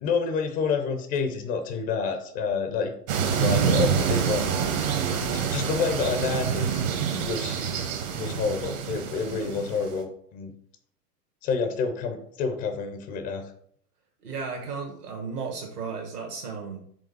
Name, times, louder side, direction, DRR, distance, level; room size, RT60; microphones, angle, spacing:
voice 1, 0.0-4.6 5.2-6.8 7.2-7.6 8.1-10.5 11.4-13.5, left 5 dB, 20° left, 6 dB, 0.5 m, -29 dB
sound 1, 3.1-10.0, right 7 dB, 55° right, 1.3 m, -26 dB
voice 2, 14.2-16.8, right 5 dB, 70° right, 0 dB, 1.7 m, -34 dB
5.2 x 3.6 x 5.3 m, 0.63 s
figure-of-eight pair, 100°, 48 cm